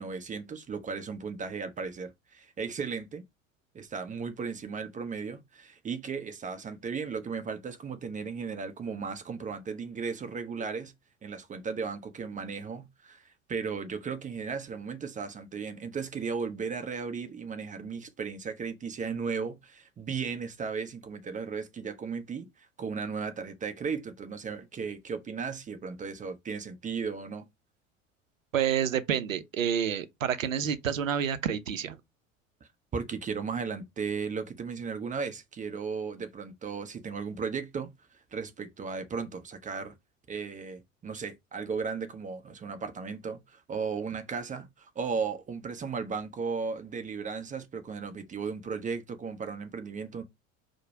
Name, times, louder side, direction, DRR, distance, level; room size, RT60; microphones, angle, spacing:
voice 1, 0.0-3.2 3.7-10.9 11.2-27.5 32.9-39.9 40.3-50.2, right 5 dB, 20° right, 0.6 m, -36 dB
voice 2, 28.5-32.0, right 8 dB, 80° right, 0.6 m, -29 dB
4.7 x 2.1 x 4.6 m
figure-of-eight pair, 70°, 39 cm